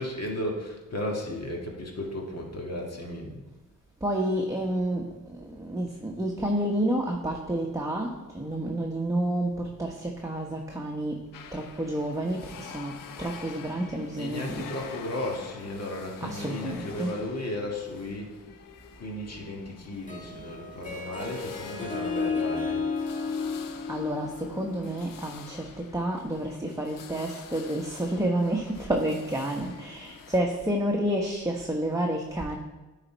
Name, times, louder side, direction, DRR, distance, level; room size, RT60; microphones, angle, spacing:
voice 1, 0.0-3.4 14.2-18.3 19.0-22.8, left 1 dB, 50° left, 0 dB, 2.0 m, -35 dB
voice 2, 4.0-11.2 11.5-14.7 16.2-17.1 23.9-32.6, right 1 dB, 10° right, 0 dB, 1.0 m, -30 dB
sound 1, 11.3-30.4, left 7 dB, 85° left, 0.7 m, -47 dB
Harp, 19.9-25.5, left 4 dB, 25° left, 1.5 m, -33 dB
9.6 x 4.2 x 4.5 m, 1.1 s
cardioid pair, 60°, 32 cm